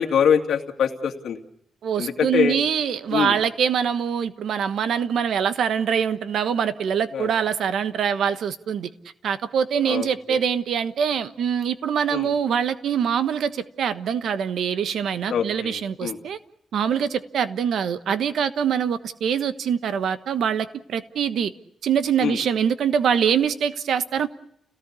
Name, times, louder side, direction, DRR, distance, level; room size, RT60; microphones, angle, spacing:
voice 1, 0.0-1.4 2.0-2.6 3.1-3.4 7.1-7.3 9.9-10.4 12.1-12.3 15.3-16.2 22.2-22.4, left 7 dB, 65° left, 2.5 m, -24 dB
voice 2, 1.8-8.9 9.2-16.4 16.7-21.5 21.8-24.3, right 8 dB, 65° right, 1.2 m, -24 dB
29.5 x 18.0 x 8.4 m
wide cardioid pair, 175°, 0 cm